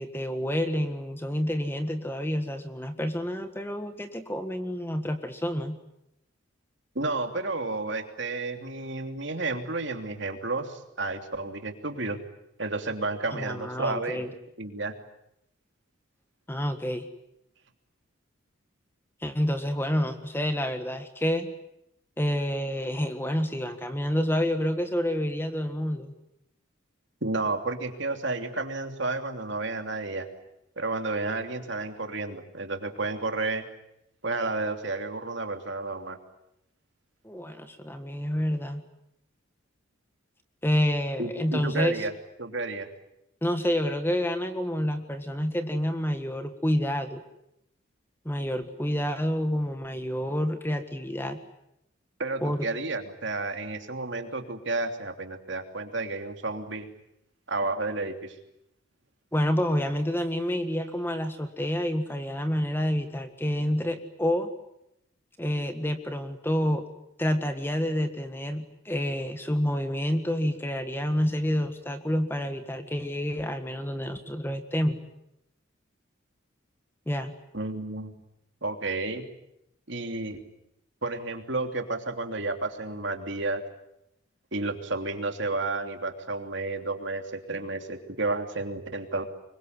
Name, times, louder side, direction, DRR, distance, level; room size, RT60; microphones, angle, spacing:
voice 1, 0.0-5.8 13.3-14.3 16.5-17.1 19.2-21.5 22.2-26.1 37.2-38.8 40.6-42.0 43.4-47.2 48.2-51.4 52.4-52.6 59.3-64.5 65.4-66.8 67.2-75.0 77.1-77.3, equal, 10° left, 8 dB, 1.6 m, -28 dB
voice 2, 6.9-12.2 12.6-14.2 14.6-14.9 27.2-30.3 30.8-33.6 34.2-36.2 41.2-42.1 42.4-42.9 52.2-56.9 57.5-58.4 77.5-78.2 78.6-79.2 79.9-80.4 81.0-83.6 84.5-89.2, right 3 dB, 60° right, 5 dB, 3.0 m, -31 dB
25.5 x 23.0 x 9.6 m, 0.83 s
head